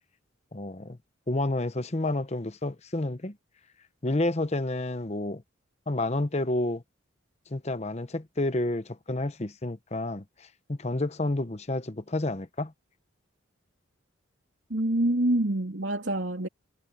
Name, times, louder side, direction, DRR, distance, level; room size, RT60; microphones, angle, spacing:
voice 1, 0.5-1.0 1.3-3.4 4.0-5.4 5.9-6.8 7.5-12.7, left 2 dB, 35° left, 0.9 m, -30 dB
voice 2, 14.7-16.5, right 1 dB, 70° right, 2.9 m, -26 dB
head